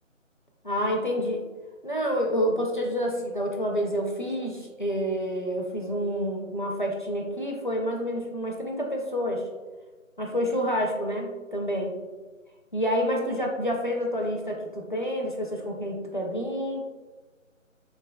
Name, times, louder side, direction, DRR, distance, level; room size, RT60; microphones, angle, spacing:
voice 1, 0.6-1.4 1.8-9.4 10.2-12.0 12.7-16.8, equal, 40° left, 0 dB, 0.4 m, -28 dB
3.7 x 3.3 x 2.3 m, 1.3 s
figure-of-eight pair, 160°, 40 cm